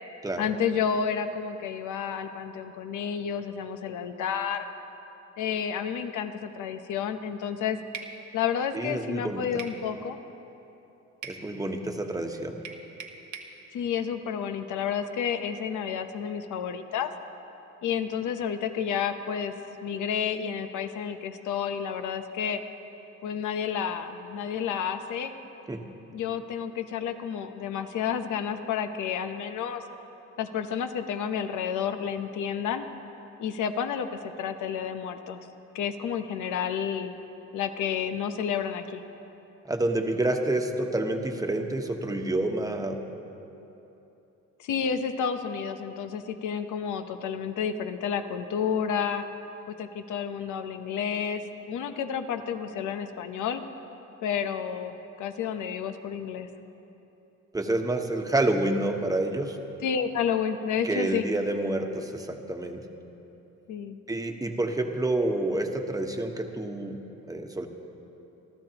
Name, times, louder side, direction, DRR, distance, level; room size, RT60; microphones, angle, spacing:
voice 1, 0.4-4.6 5.4-7.8 8.3-10.2 13.7-17.1 17.8-19.5 19.8-22.6 23.2-25.3 26.1-29.8 30.4-32.9 33.4-35.4 35.7-37.2 37.5-39.0 44.6-49.2 49.7-53.6 54.2-56.5 59.8-61.3 63.7-64.0, left 7 dB, 80° left, 8 dB, 0.9 m, -30 dB
sound 1, 7.9-8.2 9.6-9.8 11.2-11.4 12.6-13.5, right 6 dB, 75° right, 1.2 m, -40 dB
voice 2, 8.7-9.5 11.2-12.6 25.7-25.8 39.7-43.0 57.5-59.6 60.8-62.8 64.1-67.0 67.3-67.7, right 2 dB, 10° right, 4 dB, 1.2 m, -28 dB
28.5 x 12.5 x 3.0 m, 3.0 s
cardioid pair, 90°, 30 cm